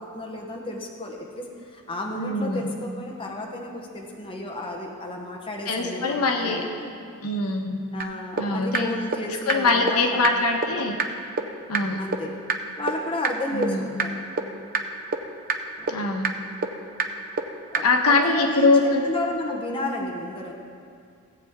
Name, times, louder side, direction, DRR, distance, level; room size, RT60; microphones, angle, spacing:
voice 1, 0.0-6.9 7.9-10.4 12.0-12.4 12.8-14.2 15.8-16.0 17.7-20.5, left 1 dB, 25° left, 0 dB, 1.0 m, -32 dB
voice 2, 2.2-2.7 5.7-6.6 7.2-7.8 8.4-8.9 9.3-11.0 11.7-12.0 13.5-14.0 15.9-16.3 17.8-19.0 20.0-20.1, left 3 dB, 90° left, 3 dB, 1.1 m, -23 dB
sound 1, 8.0-8.1 8.4-8.5 8.7-8.8 9.1-9.2 9.5-9.6 9.9-10.0 10.2-10.3 10.6-10.7 11.0-11.1 11.4-11.5 11.7-11.8 12.1-12.2 12.5-12.6 12.9-13.0 13.2-13.3 13.6-13.7 14.0-14.1 14.4-14.5 14.7-14.8 15.1-15.2 15.5-15.6 15.9-16.0 16.2-16.3 16.6-16.7 17.0-17.1 17.4-17.5 17.7-17.8, right 5 dB, 40° right, 0.6 m, -24 dB
17.0 x 8.2 x 3.6 m, 2.3 s
head